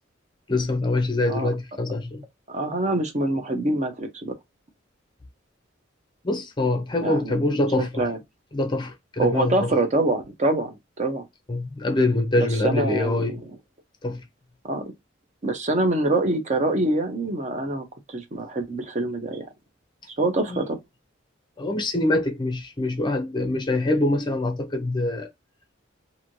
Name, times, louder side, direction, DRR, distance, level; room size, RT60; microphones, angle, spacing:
voice 1, 0.5-2.2 6.2-8.1 8.5-9.7 11.5-13.3 14.0-14.2 20.5-20.6 21.6-25.3, left 2 dB, 25° left, 0.5 m, -24 dB
voice 2, 2.5-4.3 7.0-7.4 7.8-8.2 9.2-11.3 12.4-13.4 14.6-14.8 15.4-19.5 20.2-20.8, right 2 dB, 35° right, 0.6 m, -25 dB
3.0 x 2.6 x 2.5 m
head